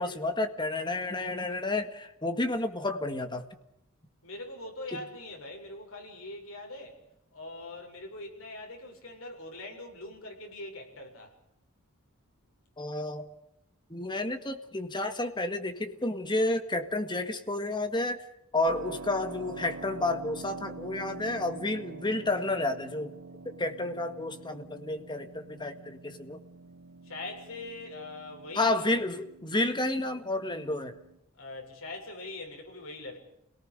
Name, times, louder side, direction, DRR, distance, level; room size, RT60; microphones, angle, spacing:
voice 1, 0.0-3.5 4.9-5.0 12.8-13.2 13.9-18.2 18.5-23.1 23.5-26.4 28.6-31.0, left 2 dB, 20° left, 7 dB, 1.9 m, -31 dB
voice 2, 4.2-7.0 7.3-11.4 27.0-29.0 31.4-33.2, left 2 dB, 75° left, 2 dB, 6.9 m, -42 dB
Keyboard (musical), 18.7-31.2, right 3 dB, 75° right, 1.2 m, -46 dB
29.5 x 18.5 x 6.7 m, 0.81 s
head